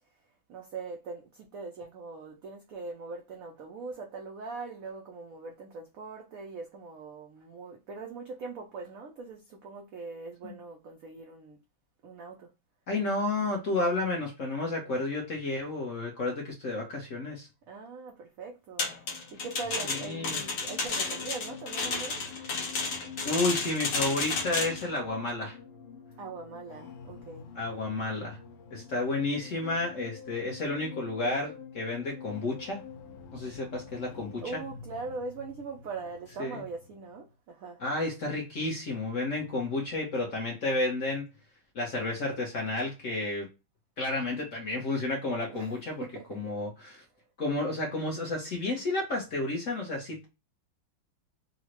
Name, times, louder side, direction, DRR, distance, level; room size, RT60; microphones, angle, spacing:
voice 1, 0.5-11.6 12.0-12.5 17.7-18.9 19.3-22.2 26.2-27.5 34.4-37.8 45.5-46.4, right 4 dB, 80° right, 0.7 m, -41 dB
voice 2, 12.9-17.5 19.8-20.4 23.2-25.6 27.5-28.4 28.7-32.8 33.3-34.4 36.4-36.6 37.8-41.3 41.7-43.5 44.0-46.0 46.3-47.0 47.4-50.2, left 2 dB, 55° left, 0.9 m, -31 dB
sound 1, 18.8-37.3, left 7 dB, 90° left, 1.4 m, -48 dB
sound 2, 18.8-24.9, left 4 dB, 75° left, 1.6 m, -32 dB
3.8 x 2.1 x 2.9 m
omnidirectional pair, 2.1 m